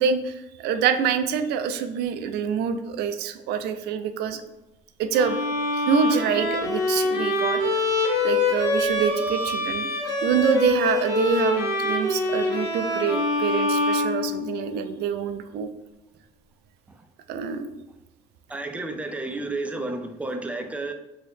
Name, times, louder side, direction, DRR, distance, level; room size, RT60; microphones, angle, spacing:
voice 1, 0.0-4.4 5.0-5.4 5.7-7.8 8.2-9.9 10.2-15.7 17.3-17.7, right 7 dB, 75° right, 9 dB, 0.4 m, -26 dB
Bowed string instrument, 5.1-14.8, left 2 dB, 85° left, 1.2 m, -25 dB
voice 2, 18.5-20.9, right 2 dB, 10° right, 5 dB, 0.4 m, -31 dB
3.0 x 2.7 x 3.2 m, 0.95 s
cardioid pair, 110°, 17 cm